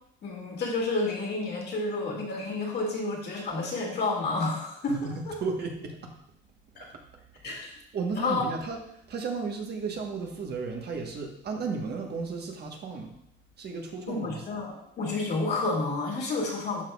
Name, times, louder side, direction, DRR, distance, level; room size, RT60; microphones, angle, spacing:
voice 1, 0.2-5.4 6.8-6.9 7.4-7.7 8.1-8.5 14.1-16.8, left 3 dB, 55° left, -2 dB, 2.0 m, -30 dB
voice 2, 4.9-6.1 6.8-6.9 7.9-8.8 9.1-13.1 13.6-14.4, right 4 dB, 50° right, 2 dB, 1.2 m, -34 dB
12.0 x 4.1 x 2.3 m, 0.75 s
cardioid pair, 115°, 21 cm